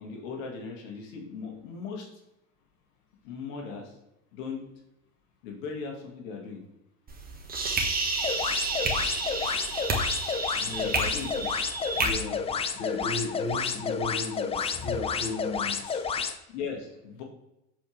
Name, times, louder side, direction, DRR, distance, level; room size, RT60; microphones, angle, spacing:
voice 1, 0.0-2.1 3.2-3.9 4.3-4.6 5.4-6.6 10.8-11.5 16.5-17.2, left 5 dB, 70° left, 0 dB, 1.8 m, -38 dB
sound 1, 7.1-12.1, right 3 dB, 25° right, 1.3 m, -30 dB
sound 2, 8.2-16.4, left 6 dB, 15° left, 0.4 m, -31 dB
voice 2, 10.6-11.2 12.0-16.1, left 3 dB, 45° left, 0 dB, 1.7 m, -35 dB
7.1 x 4.6 x 3.1 m, 0.88 s
hypercardioid pair, 90°, 39 cm